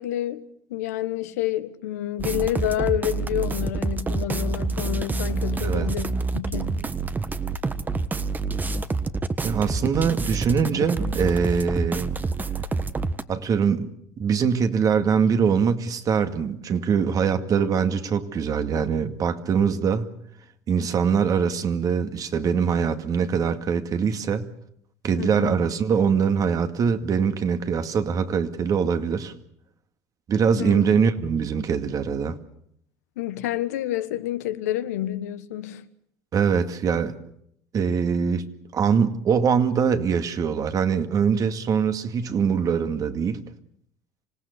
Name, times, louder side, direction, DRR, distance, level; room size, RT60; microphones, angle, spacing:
voice 1, 0.0-6.8 25.2-25.6 30.6-30.9 33.2-35.8, left 13 dB, 85° left, 1.3 m, -29 dB
sound 1, 2.2-13.2, right 3 dB, 20° right, 1.4 m, -27 dB
voice 2, 9.4-12.1 13.3-13.9 14.2-20.1 20.7-24.5 25.0-29.3 30.3-32.4 36.3-37.2 37.7-38.4 38.7-43.4, right 6 dB, 45° right, 2.2 m, -23 dB
26.5 x 18.0 x 8.2 m
hypercardioid pair, 75°, 8 cm